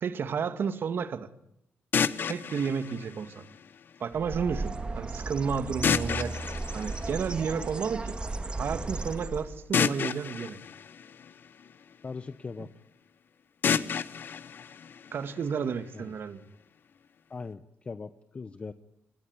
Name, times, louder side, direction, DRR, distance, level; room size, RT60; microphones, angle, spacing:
voice 1, 0.0-1.3 2.3-3.4 4.0-6.4 6.7-8.2 8.6-10.6 15.1-16.4, right 6 dB, 50° right, 11 dB, 2.1 m, -31 dB
sound 1, 1.9-3.9 5.8-7.8 9.7-11.9 13.6-15.7, left 7 dB, 50° left, 1.2 m, -31 dB
Bird, 4.1-9.7, right 3 dB, 20° right, 2.3 m, -35 dB
voice 2, 12.0-12.7 15.9-16.1 17.3-18.7, left 4 dB, 25° left, 12 dB, 1.1 m, -40 dB
27.0 x 22.5 x 9.7 m, 0.76 s
cardioid pair, 140°, 5 cm